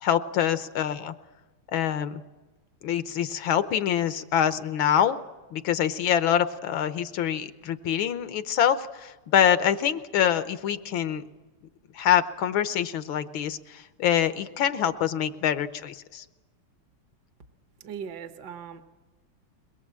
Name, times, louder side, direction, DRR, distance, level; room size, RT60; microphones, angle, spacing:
voice 1, 0.0-1.1 1.7-2.2 2.8-5.2 5.5-11.2 11.9-16.2, left 9 dB, 75° left, 11 dB, 1.7 m, -25 dB
voice 2, 17.8-18.8, right 7 dB, 60° right, 6 dB, 1.6 m, -39 dB
22.5 x 21.0 x 7.5 m, 1.2 s
omnidirectional pair, 2.2 m